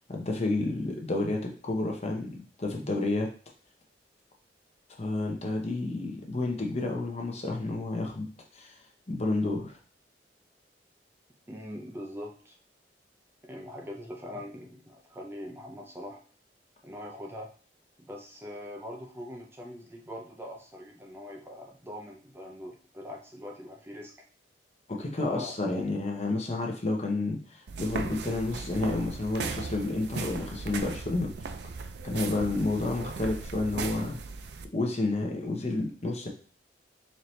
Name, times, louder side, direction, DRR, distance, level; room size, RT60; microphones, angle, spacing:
voice 1, 0.1-3.3 5.0-8.8 9.1-9.8 24.9-31.5 32.0-34.2 34.7-36.3, left 2 dB, 40° left, 1 dB, 0.8 m, -30 dB
voice 2, 11.5-12.6 13.4-16.2 16.8-17.5 18.0-24.1 25.0-25.8, left 1 dB, 15° right, 0 dB, 0.5 m, -42 dB
sound 1, 27.7-34.6, right 4 dB, 65° right, 0.4 m, -37 dB
4.2 x 2.8 x 3.1 m, 0.41 s
head